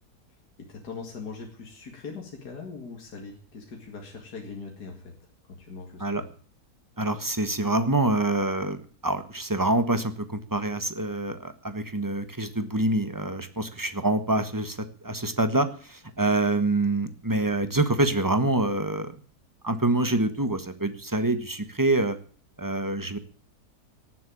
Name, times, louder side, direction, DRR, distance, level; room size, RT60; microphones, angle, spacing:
voice 1, 0.3-5.2 5.6-6.3, left 4 dB, 65° left, 1 dB, 2.8 m, -41 dB
voice 2, 7.0-8.8 9.0-19.2 19.6-22.2 22.6-23.2, right 2 dB, 15° right, 10 dB, 1.2 m, -26 dB
18.0 x 7.7 x 8.6 m, 0.43 s
omnidirectional pair, 1.8 m